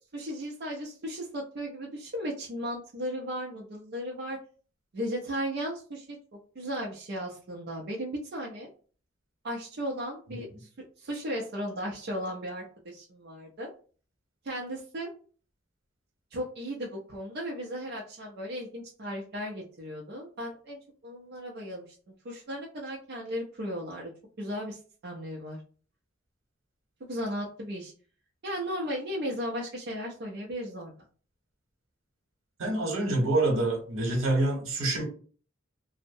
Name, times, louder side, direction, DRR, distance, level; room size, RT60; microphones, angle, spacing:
voice 1, 0.1-4.4 4.9-6.2 6.6-8.7 9.4-10.7 11.0-13.7 14.4-15.1 16.3-22.0 22.2-24.1 24.4-25.6 27.1-27.9 28.4-30.9, equal, 55° right, 0.5 m, -36 dB
voice 2, 32.6-35.0, right 2 dB, 80° right, 1.0 m, -26 dB
2.6 x 2.0 x 2.6 m
head